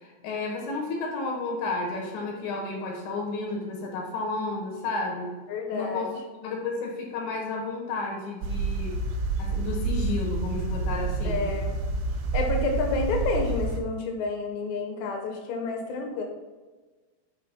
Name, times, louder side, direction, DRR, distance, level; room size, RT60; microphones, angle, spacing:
voice 1, 0.0-5.3 5.7-6.1 6.4-9.0 9.4-11.5, left 3 dB, 70° left, 0 dB, 3.1 m, -32 dB
voice 2, 5.5-6.1 11.3-11.8 12.3-16.2, left 3 dB, 85° left, 2 dB, 3.8 m, -29 dB
sound 1, 8.4-13.8, right 3 dB, 80° right, 3.3 m, -28 dB
9.7 x 5.7 x 2.2 m, 1.3 s
omnidirectional pair, 5.8 m